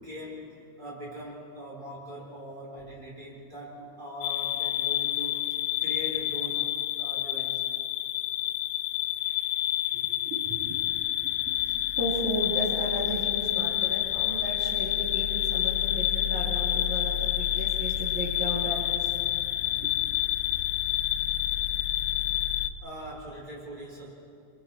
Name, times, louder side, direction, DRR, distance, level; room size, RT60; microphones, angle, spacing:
voice 1, 0.0-7.6 22.8-24.1, equal, 15° right, -6 dB, 6.4 m, -41 dB
sound 1, 4.2-22.7, left 13 dB, 80° left, 2.2 m, -28 dB
voice 2, 9.9-10.8 11.2-11.6 12.0-19.1 19.7-19.9, right 1 dB, 65° right, -5 dB, 4.5 m, -35 dB
29.5 x 26.5 x 4.5 m, 2.4 s
omnidirectional pair, 3.7 m